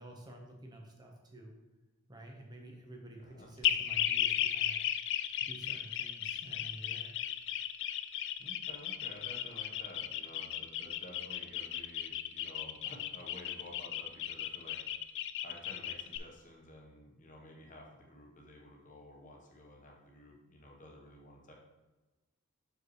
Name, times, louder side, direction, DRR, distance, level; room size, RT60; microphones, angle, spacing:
voice 1, 0.0-1.5 2.1-4.8 5.4-7.2, right 1 dB, 20° right, 0 dB, 0.9 m, -50 dB
voice 2, 3.2-3.8 8.4-14.8 15.4-21.5, left 1 dB, 35° left, -1 dB, 1.1 m, -52 dB
sound 1, 3.6-16.2, left 11 dB, 55° left, 0.3 m, -35 dB
6.5 x 5.0 x 3.1 m, 1.1 s
head